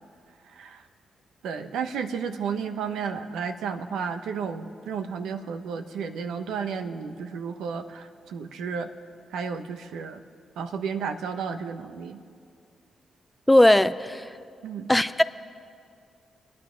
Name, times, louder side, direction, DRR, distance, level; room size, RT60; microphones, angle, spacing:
voice 1, 0.5-0.8 1.4-8.9 9.3-10.2 10.6-12.2 14.6-14.9, right 6 dB, 85° right, 0.9 m, -32 dB
voice 2, 13.5-14.2 14.9-15.2, left 1 dB, 10° left, 0.6 m, -18 dB
28.5 x 9.7 x 5.1 m
supercardioid pair, 50°, 0 cm